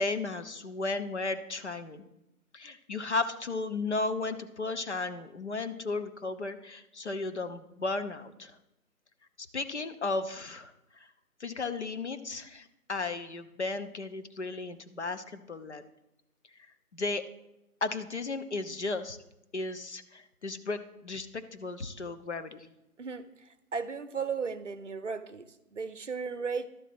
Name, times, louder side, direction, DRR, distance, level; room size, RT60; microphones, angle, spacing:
voice 1, 0.0-2.0 2.5-8.6 9.5-10.7 11.4-15.8 16.9-17.2 17.8-19.2 19.5-22.7, left 3 dB, 50° left, 9 dB, 0.8 m, -34 dB
voice 2, 23.0-26.7, right 5 dB, 50° right, 12 dB, 0.7 m, -36 dB
11.5 x 4.1 x 7.7 m, 0.89 s
hypercardioid pair, 175°, 45 cm